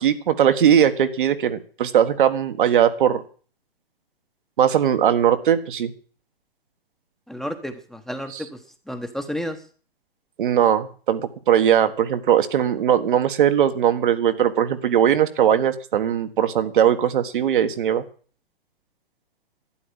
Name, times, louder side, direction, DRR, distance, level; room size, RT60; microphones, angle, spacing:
voice 1, 0.0-3.2 4.6-5.9 10.4-11.2 11.5-18.0, right 9 dB, 55° right, 9 dB, 1.6 m, -19 dB
voice 2, 7.3-9.6, equal, ahead, 6 dB, 1.2 m, -32 dB
12.0 x 10.0 x 8.8 m, 0.43 s
figure-of-eight pair, 125°, 30 cm